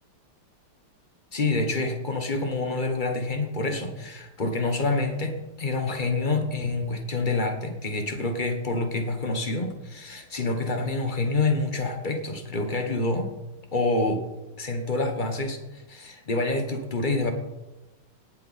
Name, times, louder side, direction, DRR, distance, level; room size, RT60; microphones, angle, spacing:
voice 1, 1.3-13.3 13.7-14.2 14.6-17.3, left 2 dB, 30° left, 5 dB, 1.0 m, -27 dB
18.0 x 7.5 x 4.3 m, 1.1 s
omnidirectional pair, 2.4 m